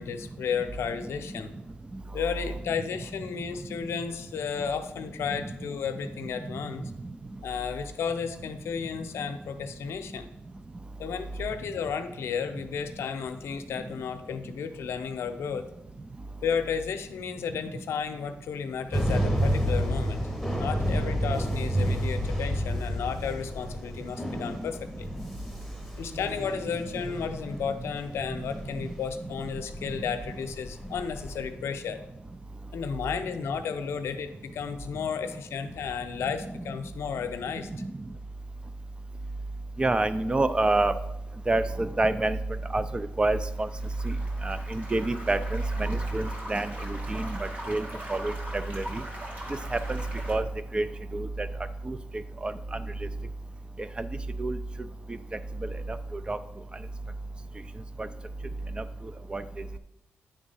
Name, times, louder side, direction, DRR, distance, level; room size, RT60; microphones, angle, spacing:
voice 1, 0.0-1.5 2.1-6.9 7.4-10.3 11.0-15.7 16.4-20.2 20.6-25.1 26.0-32.0 32.7-37.7, left 6 dB, 90° left, 8 dB, 0.6 m, -33 dB
sound 1, 18.9-31.5, equal, ahead, 1.3 m, -30 dB
voice 2, 39.8-40.9 41.5-43.7 44.0-44.2 44.4-49.0 49.7-50.0 50.3-50.5 50.7-50.9 51.1-51.5 51.8-52.8 54.0-54.1 54.4-54.6 56.1-56.4 58.0-58.1 58.8-58.9 59.3-59.4, right 2 dB, 20° right, 12 dB, 0.5 m, -28 dB
sound 2, 43.2-50.3, equal, 40° right, 2.0 m, -42 dB
9.2 x 3.6 x 5.5 m, 0.86 s
cardioid pair, 95°, 4 cm